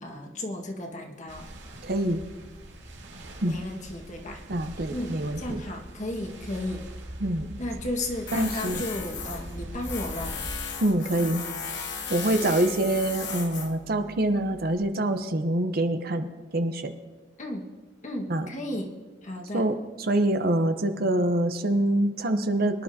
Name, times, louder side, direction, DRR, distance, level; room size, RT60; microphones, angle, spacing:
voice 1, 0.0-1.5 3.4-4.4 4.9-6.9 7.6-10.4 17.4-17.7 18.0-19.7, left 1 dB, 40° left, 1 dB, 1.7 m, -34 dB
sound 1, 1.3-10.6, right 1 dB, 80° right, 2.3 m, -42 dB
voice 2, 1.8-2.2 3.4-3.6 4.5-5.6 7.2-7.6 8.3-8.8 10.8-11.4 12.1-16.3 16.5-16.9 18.3-18.5 19.5-22.8, right 1 dB, 55° right, 8 dB, 0.8 m, -25 dB
Tools, 8.3-14.8, left 6 dB, 65° left, 1.3 m, -37 dB
23.5 x 11.0 x 2.8 m, 1.3 s
head